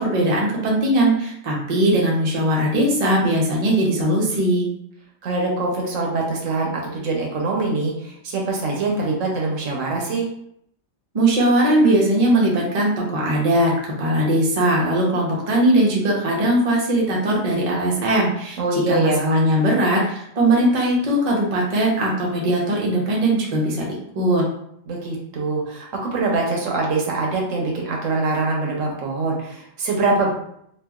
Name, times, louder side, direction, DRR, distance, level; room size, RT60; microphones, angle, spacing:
voice 1, 0.0-4.7 11.1-13.7 14.0-18.6 18.9-23.8 24.1-24.4, right 1 dB, 40° right, -3 dB, 0.6 m, -19 dB
voice 2, 5.2-10.3 18.6-19.2 24.9-30.3, right 3 dB, 80° right, -1 dB, 1.1 m, -23 dB
2.8 x 2.4 x 2.3 m, 0.72 s
omnidirectional pair, 1.3 m